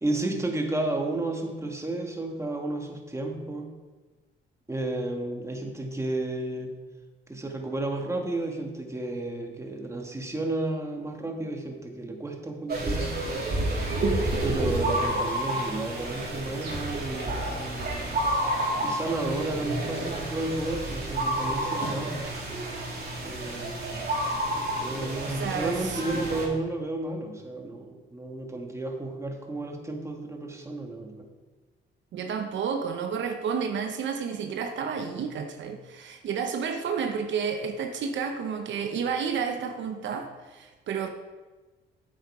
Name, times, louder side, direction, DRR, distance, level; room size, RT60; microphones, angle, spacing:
voice 1, 0.0-3.7 4.7-6.7 7.3-13.2 14.4-18.2 18.8-22.3 23.2-24.6 24.8-31.3, right 2 dB, 15° right, 2 dB, 1.6 m, -32 dB
sound 1, 12.7-26.5, right 1 dB, 50° right, 2.9 m, -30 dB
voice 2, 25.2-26.2 32.1-41.1, right 6 dB, 70° right, 6 dB, 0.9 m, -31 dB
8.5 x 8.0 x 4.9 m, 1.3 s
cardioid pair, 90°, 20 cm